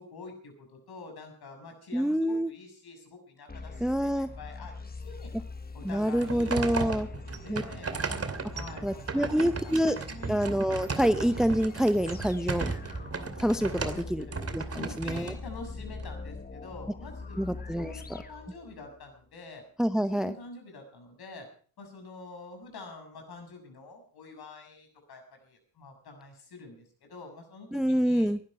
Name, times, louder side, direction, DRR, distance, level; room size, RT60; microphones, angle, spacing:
voice 1, 0.0-5.3 5.7-6.9 7.2-7.9 8.5-10.4 13.7-14.3 14.7-19.6 20.0-21.5 21.8-28.3, left 3 dB, 55° left, 5 dB, 6.9 m, -47 dB
voice 2, 1.9-2.5 3.8-4.3 5.8-7.1 7.5-7.6 8.8-10.0 10.3-12.7 13.4-14.2 14.5-15.3 17.4-17.9 19.8-20.3 27.7-28.4, equal, ahead, 12 dB, 0.9 m, -27 dB
sound 1, 3.5-19.1, left 4 dB, 20° left, 1.6 m, -44 dB
sound 2, 5.9-16.1, right 4 dB, 30° right, 2.6 m, -36 dB
20.0 x 11.5 x 4.8 m, 0.43 s
hypercardioid pair, 50°, 47 cm